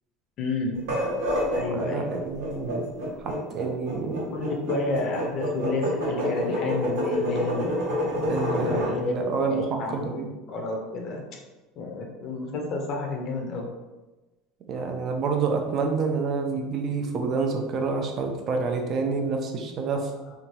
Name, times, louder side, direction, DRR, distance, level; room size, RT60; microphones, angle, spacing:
voice 1, 0.4-0.7 1.5-2.1 4.3-7.9 8.5-11.2 11.8-13.7, left 3 dB, 35° left, 1 dB, 0.5 m, -31 dB
sound 1, 0.8-9.0, equal, 85° right, 1.0 m, -28 dB
voice 2, 1.7-2.9 3.2-4.2 8.3-10.3 14.7-20.0, right 4 dB, 30° right, 3 dB, 0.4 m, -28 dB
2.6 x 2.2 x 3.0 m, 1.1 s
cardioid pair, 170°, 0 cm